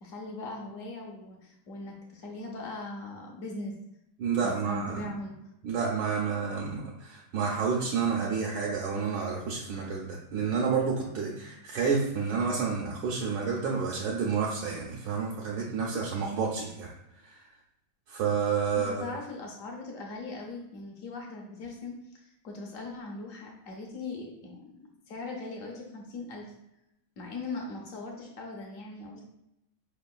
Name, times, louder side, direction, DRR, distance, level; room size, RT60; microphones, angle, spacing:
voice 1, 0.0-3.7 4.4-5.3 18.7-24.7 25.1-26.5 27.2-29.2, left 3 dB, 65° left, 0 dB, 0.8 m, -40 dB
voice 2, 4.2-5.1 5.6-16.9 17.2-17.3 18.1-19.0, right 5 dB, 80° right, -3 dB, 1.4 m, -30 dB
5.1 x 3.7 x 2.2 m, 0.85 s
omnidirectional pair, 2.2 m